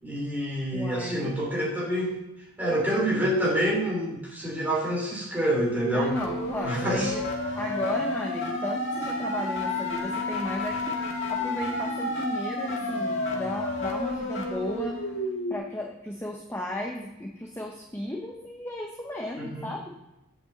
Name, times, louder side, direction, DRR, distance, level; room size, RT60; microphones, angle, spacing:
voice 1, 0.0-2.1 2.6-6.1 6.6-7.1 19.4-19.7, right 1 dB, 10° right, -4 dB, 3.2 m, -27 dB
voice 2, 0.7-1.3 5.9-7.2 7.6-11.0 11.3-15.0 15.5-19.9, left 1 dB, 10° left, 0 dB, 0.9 m, -34 dB
sound 1, 5.6-15.6, left 2 dB, 55° left, 1.7 m, -31 dB
8.3 x 6.0 x 7.8 m, 0.99 s
head